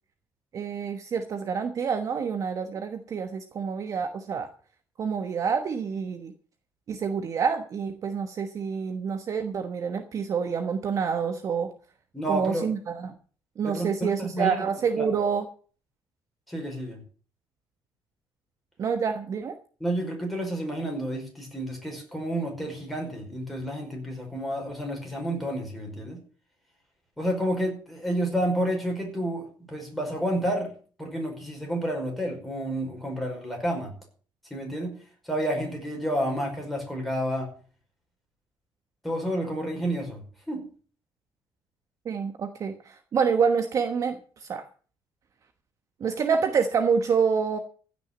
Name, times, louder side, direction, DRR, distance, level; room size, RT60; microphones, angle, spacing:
voice 1, 0.5-4.5 5.0-6.3 6.9-11.7 12.3-13.1 13.6-15.4 18.8-19.5 42.0-44.6 46.0-47.6, right 6 dB, 35° right, 8 dB, 1.2 m, -27 dB
voice 2, 12.1-12.7 13.6-14.6 15.0-15.1 16.5-17.0 19.8-26.2 27.2-30.7 31.0-33.9 34.5-34.9 35.2-37.5 39.0-40.6, right 1 dB, ahead, 0 dB, 5.1 m, -30 dB
15.5 x 6.3 x 8.4 m, 0.41 s
cardioid pair, 165°, 9 cm